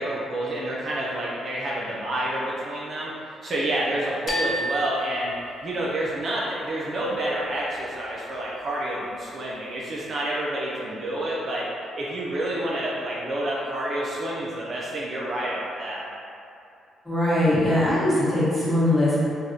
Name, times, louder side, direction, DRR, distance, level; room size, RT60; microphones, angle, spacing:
voice 1, 0.0-3.1 3.4-5.3 5.6-11.7 12.0-16.1, right 1 dB, 50° right, -6 dB, 0.5 m, -28 dB
sound 1, 4.3-6.2, equal, 40° left, 0.5 m, -31 dB
voice 2, 17.0-19.2, left 1 dB, ahead, -10 dB, 1.2 m, -21 dB
3.3 x 2.3 x 2.7 m, 2.6 s
cardioid pair, 90°, 0 cm